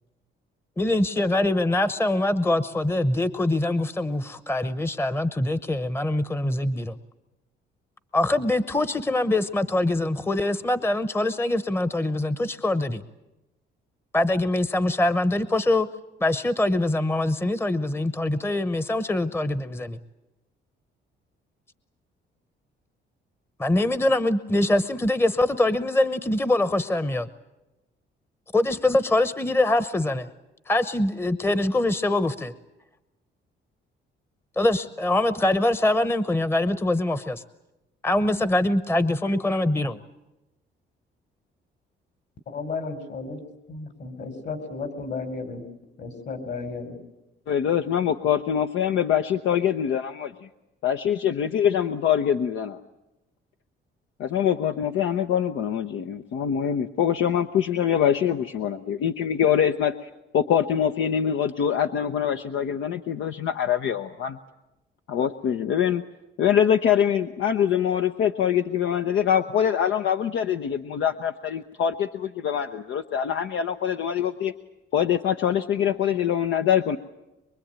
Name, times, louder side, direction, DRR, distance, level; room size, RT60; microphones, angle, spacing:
voice 1, 0.8-7.0 8.1-13.0 14.1-15.9 16.2-20.0 23.6-27.3 28.5-30.3 30.7-32.5 34.6-37.4 38.0-40.0, left 1 dB, 10° left, 13 dB, 0.9 m, -23 dB
voice 2, 42.5-43.4 43.7-45.6 46.0-47.0, left 4 dB, 60° left, 8 dB, 4.4 m, -33 dB
voice 3, 47.5-50.5 50.8-52.8 54.2-64.4 65.1-66.0 66.4-74.5 74.9-77.0, left 9 dB, 80° left, 7 dB, 0.9 m, -24 dB
24.0 x 23.0 x 8.9 m, 0.97 s
cardioid pair, 90°, 20 cm